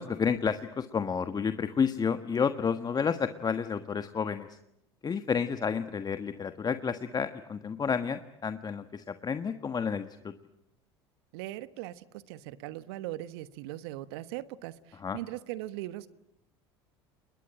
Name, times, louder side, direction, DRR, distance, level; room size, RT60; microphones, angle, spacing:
voice 1, 0.0-4.6 5.0-10.3 14.9-15.2, left 6 dB, 30° left, 10 dB, 1.4 m, -30 dB
voice 2, 11.3-16.1, right 15 dB, 70° right, 15 dB, 1.2 m, -39 dB
30.0 x 21.5 x 8.9 m, 0.84 s
hypercardioid pair, 75°, 14 cm